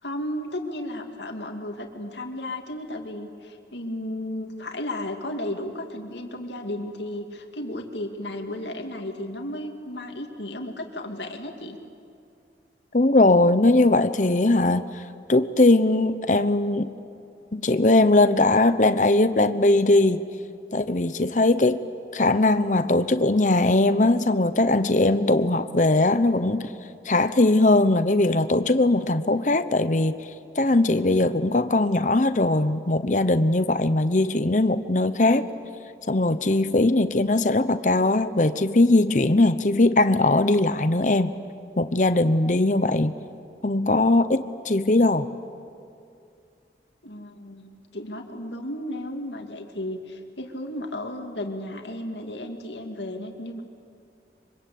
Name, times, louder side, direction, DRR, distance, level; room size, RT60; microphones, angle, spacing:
voice 1, 0.0-11.8 47.0-53.6, left 1 dB, 85° left, 4 dB, 2.5 m, -34 dB
voice 2, 12.9-15.0 15.3-16.9 17.5-20.2 20.7-21.8 22.1-26.7 27.0-30.1 30.6-35.4 36.1-41.3 41.8-43.1 43.6-45.3, left 2 dB, 45° left, 11 dB, 0.9 m, -20 dB
25.0 x 25.0 x 8.6 m, 2.5 s
head